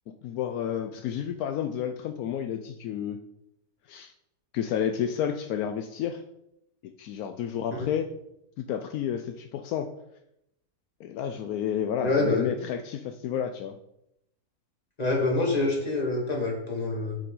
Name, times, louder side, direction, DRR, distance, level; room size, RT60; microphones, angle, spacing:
voice 1, 0.2-3.2 3.9-4.1 4.5-6.2 6.8-8.1 8.6-9.9 11.0-13.8, left 9 dB, 80° left, 7 dB, 1.0 m, -31 dB
voice 2, 12.0-12.5 15.0-17.2, left 2 dB, 25° left, -1 dB, 2.0 m, -26 dB
8.3 x 6.8 x 3.8 m, 0.82 s
omnidirectional pair, 1.6 m